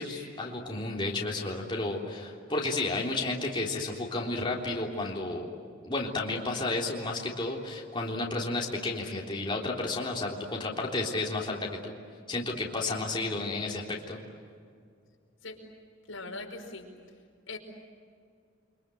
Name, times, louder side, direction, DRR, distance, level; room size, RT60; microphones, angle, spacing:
voice 1, 0.0-5.5 5.8-11.9 12.3-14.2, left 2 dB, 25° left, -2 dB, 3.5 m, -32 dB
voice 2, 16.1-16.9 17.5-17.6, left 3 dB, 85° left, 2 dB, 5.3 m, -40 dB
30.0 x 25.0 x 7.9 m, 2.2 s
head